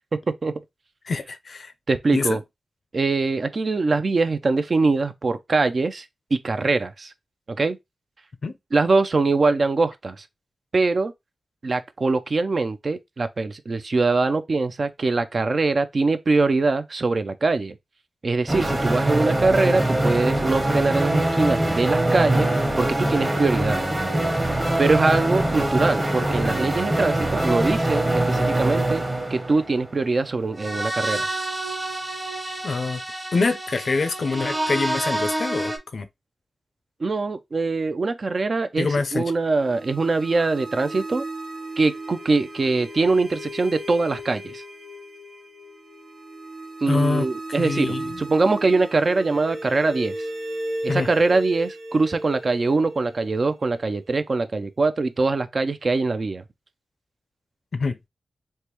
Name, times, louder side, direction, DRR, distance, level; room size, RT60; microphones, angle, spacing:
voice 1, 0.1-0.5 1.9-2.4 2.9-6.0 6.3-7.1 7.5-7.8 8.7-10.2 10.7-11.1 11.6-17.8 18.2-22.5 22.8-23.8 24.8-29.0 29.3-31.3 37.0-41.2 41.8-44.6 46.8-50.1 50.8-56.4, right 3 dB, 55° right, 0.4 m, -23 dB
voice 2, 1.1-1.7 2.1-2.4 8.4-8.5 32.6-33.0 33.3-36.1 38.8-39.2 46.9-47.3 47.6-48.2 50.9-51.1 57.7-58.0, left 4 dB, 65° left, 0.5 m, -25 dB
sound 1, 18.5-35.8, right 1 dB, 30° right, 1.1 m, -24 dB
sound 2, 39.3-54.2, right 1 dB, 85° right, 0.9 m, -36 dB
3.3 x 2.1 x 2.9 m
cardioid pair, 45°, 0 cm